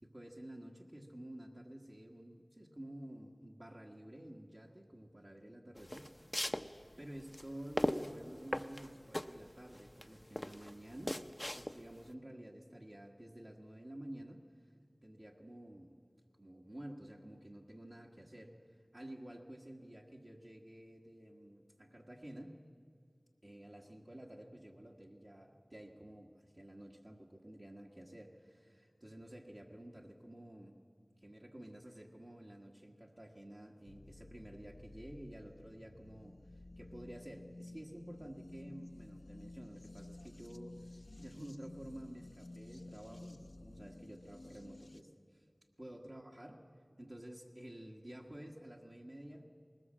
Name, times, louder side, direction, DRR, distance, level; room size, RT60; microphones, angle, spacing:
voice 1, 0.0-6.1 7.0-11.2 11.5-14.4 15.0-16.0 16.4-22.6 23.4-30.8 31.2-36.3 36.8-40.8 41.2-45.4 45.8-46.6 47.0-49.4, right 1 dB, 40° right, -1 dB, 1.6 m, -51 dB
sound 1, 5.8-12.0, left 1 dB, 25° left, 0.7 m, -39 dB
sound 2, 33.9-45.0, left 2 dB, 65° left, 0.7 m, -53 dB
20.5 x 19.0 x 7.5 m, 2.2 s
wide cardioid pair, 45°, 0 cm